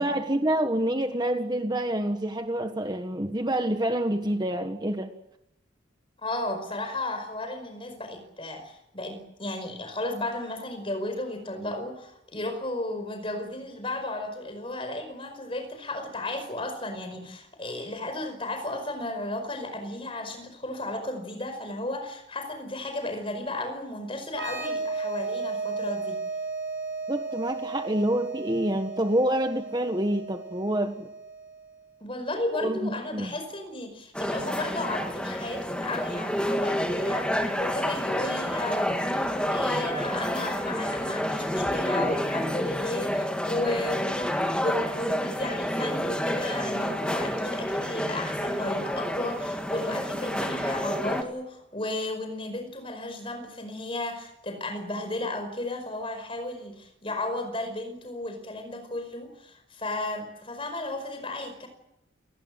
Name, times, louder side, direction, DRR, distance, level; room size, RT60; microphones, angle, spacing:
voice 1, 0.0-5.1 27.1-31.1 32.5-33.3, right 1 dB, 20° right, 6 dB, 1.4 m, -27 dB
voice 2, 6.2-26.2 32.0-61.7, left 2 dB, 30° left, 7 dB, 5.1 m, -34 dB
sound 1, 24.3-31.8, right 3 dB, 70° right, 6.2 m, -34 dB
sound 2, 34.1-51.2, equal, 5° left, 2.1 m, -29 dB
29.0 x 19.0 x 7.8 m, 0.84 s
head